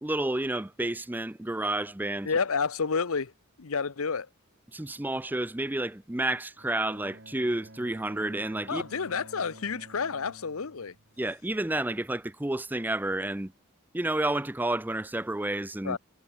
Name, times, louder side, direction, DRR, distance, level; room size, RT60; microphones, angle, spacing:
voice 1, 0.0-2.3 4.7-8.8 11.2-13.5 13.9-16.0, right 1 dB, 10° right, 0.4 m, -30 dB
voice 2, 2.2-3.3 3.6-4.3 8.7-10.9 15.8-16.0, left 5 dB, 75° left, 0.8 m, -30 dB
Bowed string instrument, 6.6-11.6, right 1 dB, 50° right, 2.8 m, -51 dB
head